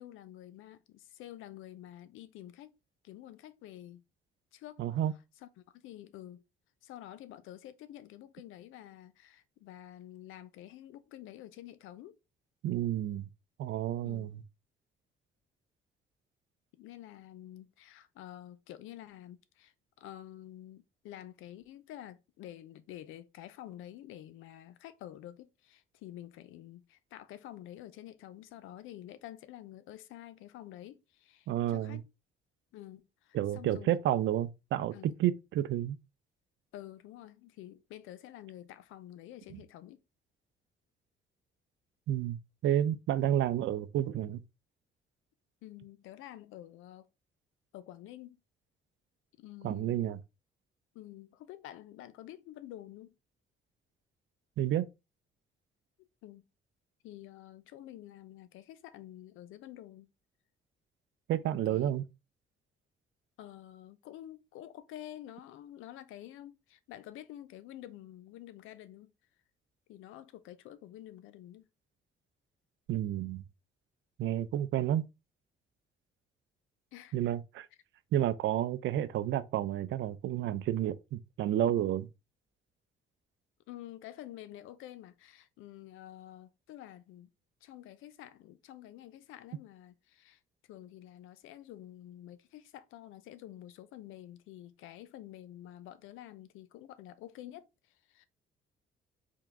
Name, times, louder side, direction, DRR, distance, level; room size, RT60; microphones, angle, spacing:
voice 1, 0.0-2.8 3.0-4.0 4.5-5.0 5.4-6.4 6.8-12.2 14.0-14.3 16.7-32.0 32.7-34.0 34.9-35.2 36.7-40.0 45.6-47.1 47.7-48.4 49.4-50.0 50.9-53.1 56.0-56.5 57.0-60.1 61.7-61.9 63.4-69.1 69.9-71.7 76.9-77.2 83.7-87.3 87.6-90.4 90.7-98.2, left 13 dB, 90° left, 0.5 m, -49 dB
voice 2, 4.8-5.1 12.6-13.3 13.6-14.4 31.5-32.0 33.3-36.0 39.5-39.6 42.1-44.4 49.6-50.2 54.6-54.9 61.3-62.0 72.9-73.4 74.2-75.1 77.1-77.7 78.1-82.1, right 11 dB, 70° right, 0.5 m, -30 dB
3.7 x 2.9 x 3.5 m
cardioid pair, 90°, 20 cm